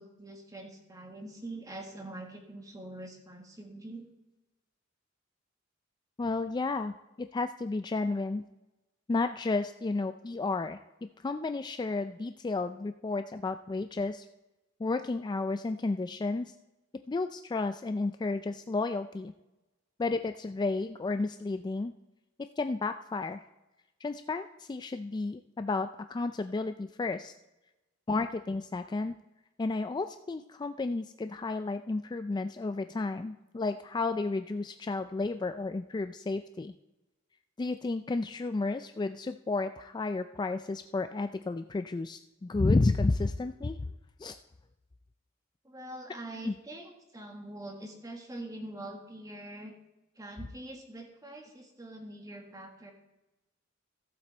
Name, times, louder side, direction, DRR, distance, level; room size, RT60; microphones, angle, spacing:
voice 1, 0.0-4.1 45.6-49.7 50.2-52.9, right 1 dB, 20° right, 3 dB, 1.5 m, -44 dB
voice 2, 6.2-8.4 9.1-10.8 11.2-14.3 14.8-16.5 17.1-19.3 20.0-21.9 22.6-23.4 24.0-27.3 28.1-29.1 29.6-36.7 37.6-43.9 44.2-44.4 46.4-46.6, left 3 dB, 20° left, 9 dB, 0.3 m, -32 dB
15.0 x 7.4 x 4.3 m, 1.0 s
head